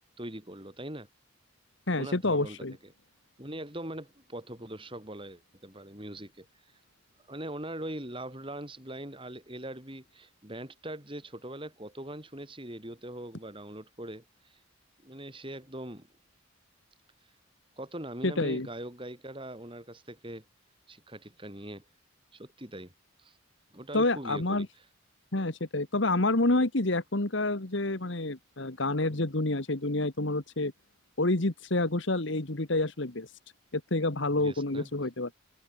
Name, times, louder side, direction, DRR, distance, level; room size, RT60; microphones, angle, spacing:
voice 1, 0.2-1.1 2.0-2.7 3.4-6.8 7.3-14.6 15.0-16.1 17.8-20.4 20.9-21.8 22.3-22.9 23.2-23.4 23.7-24.7 34.3-34.9, right 1 dB, 25° right, 4.7 m, -41 dB
voice 2, 1.9-2.7 18.2-18.7 23.9-24.7 25.3-30.7 31.2-33.3 33.7-35.3, left 2 dB, 60° left, 1.7 m, -28 dB
head